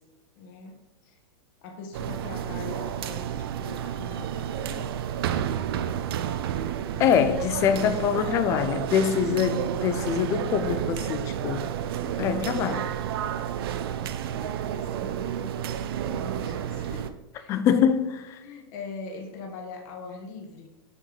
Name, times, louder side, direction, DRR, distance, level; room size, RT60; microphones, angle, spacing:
voice 1, 0.4-1.2 1.6-5.1 14.0-17.6 18.4-20.7, left 4 dB, 45° left, 1.2 m, -42 dB
sound 1, 1.9-17.1, right 9 dB, 70° right, 0.5 m, -31 dB
voice 2, 7.0-11.7 12.2-12.9 17.5-18.4, left 8 dB, 20° left, 0.3 m, -24 dB
6.3 x 4.9 x 3.8 m
supercardioid pair, 155°, 13 cm